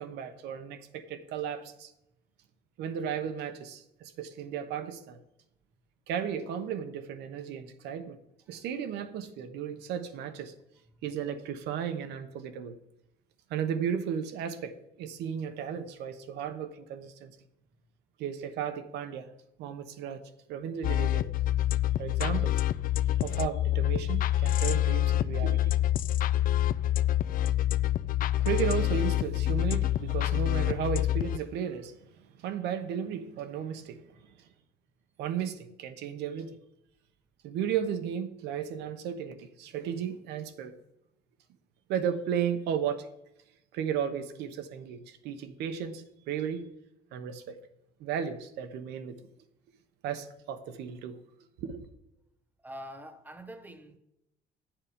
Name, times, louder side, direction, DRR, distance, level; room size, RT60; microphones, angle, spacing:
voice 1, 0.0-1.9 2.8-5.2 6.1-8.2 8.5-10.5 11.0-12.8 13.5-17.3 18.2-19.3 19.6-20.2 20.5-21.3 22.0-22.5 23.2-25.8 28.4-34.2 35.2-36.6 37.4-40.7 41.9-43.1 43.7-46.7 47.1-47.6 48.0-49.2 50.0-51.2 51.6-51.8, right 8 dB, 85° right, 1.0 m, -34 dB
sound 1, 20.8-31.4, left 13 dB, 55° left, 0.5 m, -27 dB
voice 2, 52.6-54.0, equal, 10° right, 1.2 m, -45 dB
11.0 x 7.4 x 5.2 m
cardioid pair, 110°, 17 cm